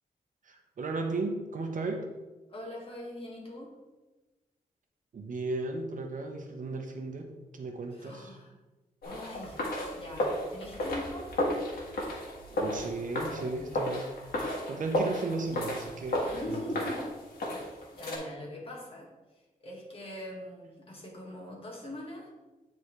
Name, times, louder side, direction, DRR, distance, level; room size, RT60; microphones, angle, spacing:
voice 1, 0.4-2.1 5.1-8.3 12.5-14.1 14.7-16.8, right 3 dB, 60° right, 3 dB, 0.9 m, -35 dB
voice 2, 2.5-3.7 7.9-8.5 9.0-9.6 9.9-11.4 16.3-17.1 17.5-19.1 19.6-22.3, left 1 dB, 40° left, -2 dB, 1.9 m, -41 dB
sound 1, 9.0-18.2, left 1 dB, 85° left, 1.7 m, -34 dB
9.8 x 3.9 x 3.2 m, 1.1 s
wide cardioid pair, 115°, 15 cm